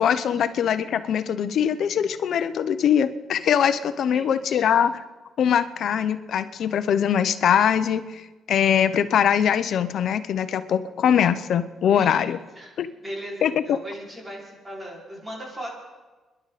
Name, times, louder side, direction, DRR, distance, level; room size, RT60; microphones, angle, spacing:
voice 1, 0.0-4.9 5.4-12.4 12.8-12.9 13.4-13.5, left 8 dB, 65° left, 12 dB, 0.8 m, -22 dB
voice 2, 4.0-4.7 11.9-12.3 12.5-12.8 13.0-15.7, equal, 20° right, -3 dB, 5.4 m, -38 dB
29.5 x 11.0 x 4.2 m, 1.2 s
cardioid pair, 90°, 0 cm